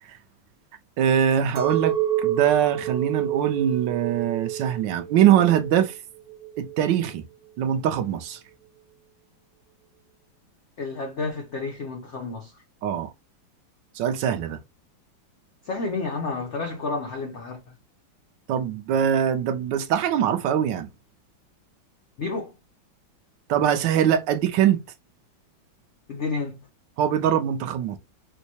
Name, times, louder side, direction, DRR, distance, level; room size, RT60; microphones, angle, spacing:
voice 1, 1.0-6.0 6.6-7.2 7.6-8.4 12.8-13.1 13.9-14.6 18.5-20.9 23.5-24.8 27.0-28.0, right 9 dB, 75° right, 1.1 m, -22 dB
Chink clink, 1.6-7.0, right 11 dB, 55° right, 0.4 m, -28 dB
voice 2, 10.8-12.5 15.7-17.6 22.2-22.5 26.1-26.6, left 3 dB, 85° left, 0.6 m, -30 dB
4.4 x 2.1 x 2.7 m
omnidirectional pair, 2.1 m